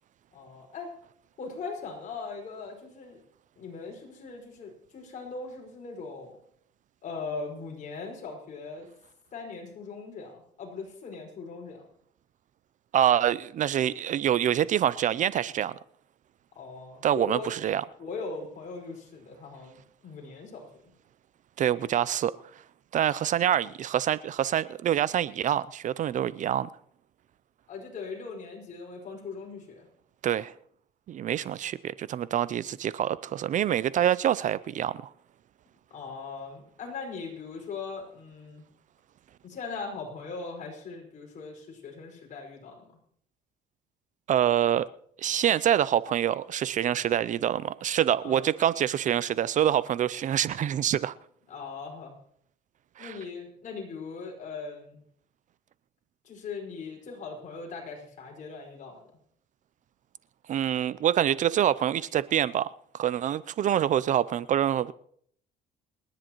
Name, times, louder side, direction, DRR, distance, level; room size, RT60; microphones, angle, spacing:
voice 1, 0.3-0.9 1.4-3.2 3.6-6.4 7.0-8.9 9.3-11.9 16.6-17.5 18.0-20.9 27.7-29.9 35.9-38.6 39.4-42.9 48.2-48.5 51.5-52.2 53.0-55.0 56.2-59.0, left 4 dB, 50° left, 5.2 m, -40 dB
voice 2, 12.9-15.8 17.0-17.8 21.6-22.3 22.9-26.7 30.2-30.5 31.1-35.1 44.3-44.9 45.2-51.1 53.0-53.2 60.5-64.9, right 10 dB, 50° right, 0.4 m, -26 dB
29.5 x 10.5 x 3.0 m
cardioid pair, 110°, 17 cm